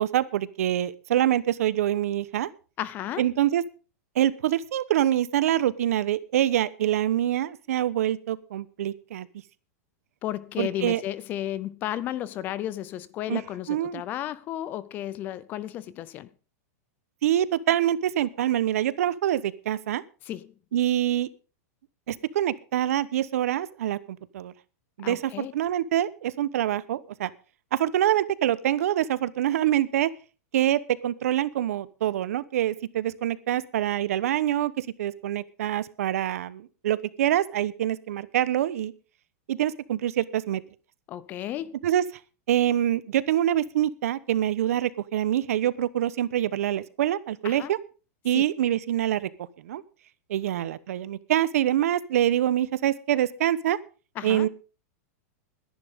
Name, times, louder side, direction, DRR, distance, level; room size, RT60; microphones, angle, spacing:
voice 1, 0.0-2.5 3.2-3.6 4.2-9.3 10.6-11.0 13.3-13.4 13.7-14.0 17.2-20.0 20.7-21.3 22.1-24.5 25.0-27.3 27.7-30.1 30.5-38.9 39.5-40.6 41.8-42.0 42.5-47.8 48.2-49.3 49.6-49.8 50.3-53.8 54.2-54.5, right 12 dB, 65° right, 1.1 m, -25 dB
voice 2, 2.8-3.2 10.2-16.3 20.2-20.5 25.0-25.5 41.1-41.8 47.4-47.7 48.3-48.4 54.2-54.5, left 12 dB, 20° left, 0.6 m, -33 dB
21.0 x 11.0 x 3.7 m
supercardioid pair, 170°, 8 cm